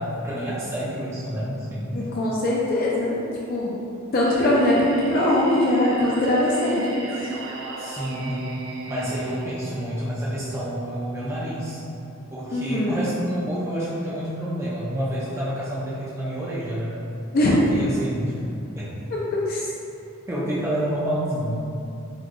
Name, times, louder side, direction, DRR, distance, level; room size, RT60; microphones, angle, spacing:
voice 1, 0.0-2.1 7.8-8.4 8.9-11.8 12.3-17.0 17.5-18.4 18.8-18.9 20.3-21.7, equal, 15° right, -8 dB, 0.4 m, -28 dB
voice 2, 1.9-3.7 4.1-7.3 12.5-13.1 17.3-17.6 19.1-19.2 19.5-19.7, left 1 dB, 45° left, -5 dB, 0.4 m, -22 dB
Singing, 4.2-10.2, right 2 dB, 80° right, 0.5 m, -36 dB
4.0 x 2.2 x 3.1 m, 2.6 s
head